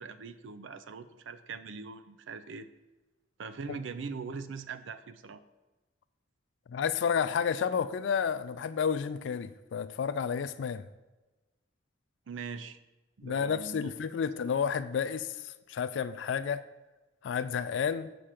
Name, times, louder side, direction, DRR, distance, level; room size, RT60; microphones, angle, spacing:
voice 1, 0.0-2.7 3.4-5.4 12.3-12.8 13.2-13.9, right 5 dB, 85° right, 12 dB, 0.5 m, -41 dB
voice 2, 6.7-10.8 13.2-16.6 17.2-18.1, left 7 dB, 75° left, 11 dB, 0.4 m, -31 dB
7.7 x 4.9 x 5.8 m, 1.1 s
head